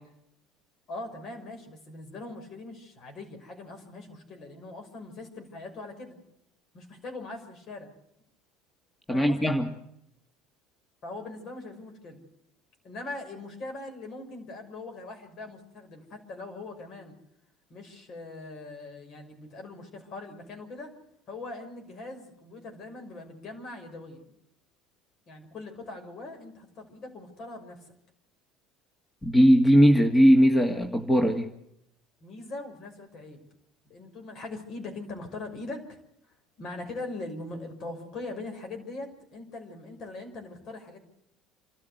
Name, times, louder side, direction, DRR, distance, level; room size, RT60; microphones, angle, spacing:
voice 1, 0.9-6.2 6.7-7.9 9.1-9.5 11.0-12.2 12.8-17.1 17.7-20.9 21.3-24.3 25.3-28.0 32.2-33.5 33.8-36.0 36.6-41.0, left 2 dB, 50° left, 5 dB, 5.8 m, -41 dB
voice 2, 9.1-9.7 29.2-31.5, equal, 15° left, 5 dB, 2.0 m, -19 dB
28.5 x 13.5 x 8.1 m, 0.79 s
hypercardioid pair, 80°, 0 cm